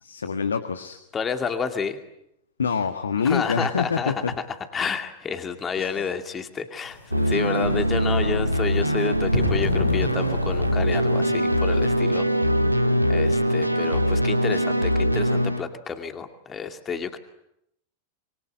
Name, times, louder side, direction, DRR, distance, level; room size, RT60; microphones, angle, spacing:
voice 1, 0.0-1.0 2.6-4.3 5.8-6.0, left 5 dB, 70° left, 9 dB, 1.6 m, -26 dB
voice 2, 1.1-2.0 3.2-4.5 4.7-12.3 12.8-17.2, left 6 dB, 20° left, 7 dB, 2.4 m, -30 dB
sound 1, 6.8-12.0, left 1 dB, 85° left, 6.8 m, -32 dB
sound 2, 7.1-15.6, equal, 90° right, 1.6 m, -22 dB
26.0 x 23.5 x 9.6 m, 0.81 s
figure-of-eight pair, 90°, 0 cm